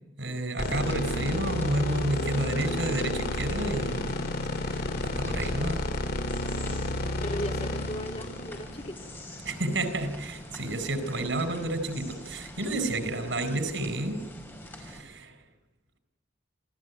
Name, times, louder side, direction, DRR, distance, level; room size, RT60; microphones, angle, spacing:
voice 1, 0.2-4.1 4.6-5.8 9.4-14.2 14.8-15.3, right 1 dB, 90° right, 10 dB, 4.3 m, -30 dB
sound 1, 0.6-9.8, left 1 dB, 60° left, 2.4 m, -31 dB
sound 2, 0.6-15.0, equal, 10° left, 5.4 m, -45 dB
voice 2, 7.2-8.9, equal, 35° left, 3 dB, 2.3 m, -37 dB
27.5 x 16.0 x 9.4 m, 1.1 s
head